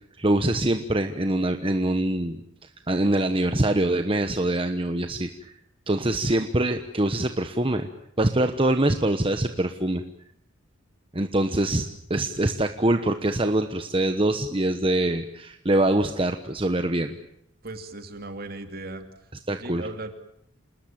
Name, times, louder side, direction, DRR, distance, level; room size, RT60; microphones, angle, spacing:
voice 1, 0.2-2.4 2.9-5.5 5.9-7.9 8.2-10.0 11.1-17.1 19.5-19.9, right 1 dB, 25° right, 7 dB, 1.2 m, -24 dB
voice 2, 17.6-19.0 19.5-20.1, right 2 dB, 50° right, 7 dB, 2.9 m, -37 dB
28.0 x 20.0 x 8.9 m, 0.74 s
head